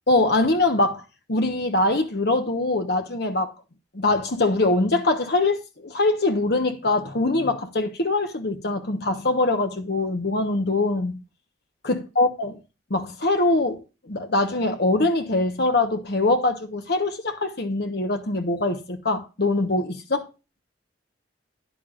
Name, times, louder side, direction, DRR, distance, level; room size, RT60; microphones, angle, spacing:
voice 1, 0.1-1.0 1.3-3.5 3.9-11.2 11.8-12.5 12.9-20.3, left 2 dB, 60° left, 1.2 m, -23 dB
10.5 x 9.2 x 2.5 m
head